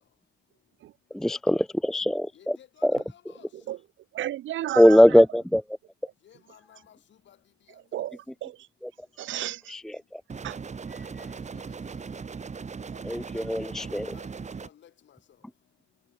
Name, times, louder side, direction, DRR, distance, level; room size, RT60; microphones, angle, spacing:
voice 1, 1.1-2.6 2.8-3.0 4.8-5.6 9.7-9.8 10.1-10.2 13.0-14.1, equal, ahead, 0.5 m, -20 dB
voice 2, 2.3-3.5 6.2-7.0 7.3-7.4 11.2-11.6 14.1-14.3 14.6-15.2, left 10 dB, 65° left, 8.0 m, -55 dB
voice 3, 4.1-5.2 7.9-8.7 9.2-9.8 10.4-10.6, right 13 dB, 75° right, 1.4 m, -33 dB
sound 1, 10.3-14.7, right 5 dB, 35° right, 4.5 m, -38 dB
cardioid pair, 90°, 20 cm